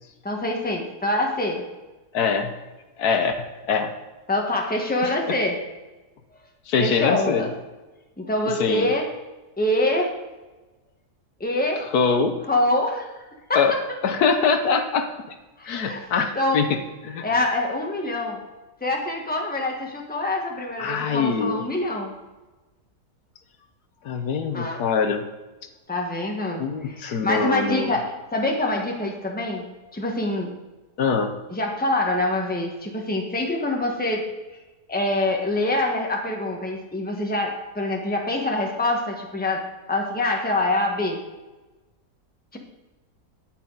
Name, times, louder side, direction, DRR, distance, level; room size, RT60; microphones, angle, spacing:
voice 1, 0.2-1.7 4.3-5.6 6.8-7.5 8.2-9.1 9.6-10.2 11.4-11.9 12.5-13.1 13.5-13.6 15.6-16.0 16.3-16.6 17.2-18.4 18.8-22.2 24.5-24.8 25.9-29.6 29.9-30.5 31.5-34.3 34.9-41.2 42.5-42.6, left 1 dB, 5° left, 0 dB, 1.3 m, -25 dB
voice 2, 2.1-2.5 3.0-3.9 5.0-5.4 6.7-7.5 8.5-8.9 11.9-12.3 13.5-13.7 14.0-15.4 15.7-16.8 17.0-17.2 20.8-21.6 24.0-25.2 26.6-27.9 31.0-31.3, left 5 dB, 75° left, 7 dB, 1.4 m, -23 dB
10.0 x 8.7 x 3.9 m, 1.2 s
omnidirectional pair, 1.7 m